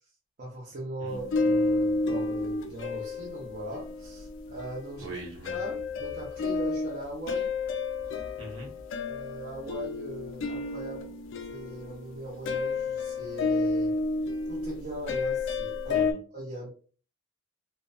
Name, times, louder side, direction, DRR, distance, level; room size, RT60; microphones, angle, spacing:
voice 1, 0.4-5.1 5.5-7.5 9.0-11.1 11.5-13.9 14.5-16.7, right 1 dB, 45° right, -7 dB, 0.7 m, -39 dB
sound 1, 1.1-5.0 5.4-16.1, left 3 dB, 65° left, 0.3 m, -31 dB
voice 2, 5.0-5.6 8.4-8.7 15.9-16.2, right 1 dB, 75° right, -2 dB, 1.0 m, -41 dB
2.5 x 2.1 x 2.5 m, 0.40 s
head